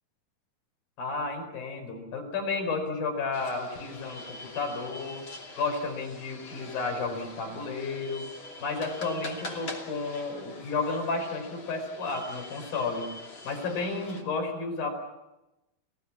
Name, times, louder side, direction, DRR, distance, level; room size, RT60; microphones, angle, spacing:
voice 1, 1.0-5.3 5.6-8.3 8.6-13.1 13.4-14.9, left 3 dB, 85° left, 4 dB, 6.5 m, -32 dB
sound 1, 3.3-14.2, left 2 dB, 35° left, 3.3 m, -44 dB
29.0 x 18.0 x 7.4 m, 0.94 s
omnidirectional pair, 4.0 m